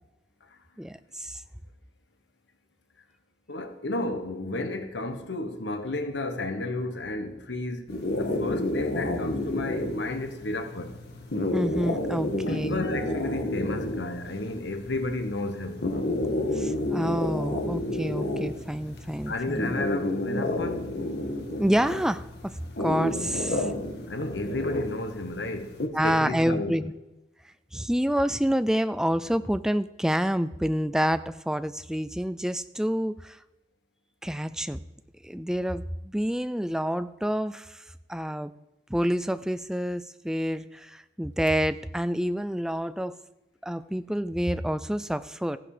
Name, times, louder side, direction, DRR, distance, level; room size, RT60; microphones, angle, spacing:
voice 1, 0.8-1.4 11.5-12.9 16.5-19.7 21.6-23.7 25.9-26.9 27.7-33.4 34.2-34.8 35.2-37.8 38.1-38.5 38.9-43.2 43.6-45.6, equal, 5° right, 0.4 m, -28 dB
voice 2, 3.5-11.0 12.5-15.9 18.7-18.8 19.3-21.0 24.1-25.8 26.0-26.8 38.3-38.4, left 2 dB, 85° left, 1.3 m, -32 dB
sound 1, 7.9-25.9, left 1 dB, 65° left, 1.7 m, -31 dB
15.5 x 11.0 x 5.0 m
head